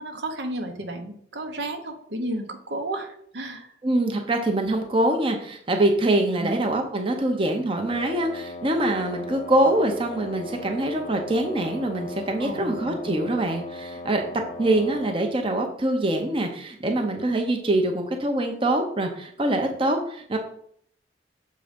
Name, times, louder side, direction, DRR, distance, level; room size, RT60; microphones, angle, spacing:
voice 1, 0.0-3.7 4.6-4.8 6.4-6.6 12.4-13.2, right 1 dB, 75° right, 5 dB, 1.0 m, -33 dB
voice 2, 3.8-14.2 14.6-20.4, right 1 dB, 30° right, 4 dB, 0.8 m, -24 dB
Wind instrument woodwind instrument, 7.8-15.3, left 1 dB, 40° left, 0.3 m, -38 dB
6.7 x 3.8 x 5.2 m, 0.64 s
head